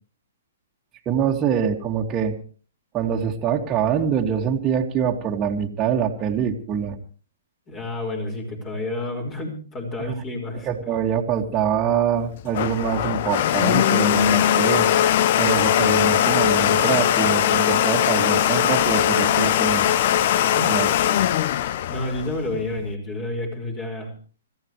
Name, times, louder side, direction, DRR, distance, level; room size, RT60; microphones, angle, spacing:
voice 1, 1.1-2.3 2.9-7.0 10.0-10.1 10.5-14.9 15.4-19.8 20.7-21.3, right 8 dB, 25° right, -1 dB, 2.3 m, -24 dB
voice 2, 7.7-10.7 20.5-20.7 21.9-24.1, left 2 dB, 25° left, 3 dB, 5.4 m, -29 dB
Domestic sounds home sounds, 12.2-22.9, left 11 dB, 50° left, 0.8 m, -20 dB
26.0 x 14.5 x 3.3 m, 0.39 s
hypercardioid pair, 140°, 0 cm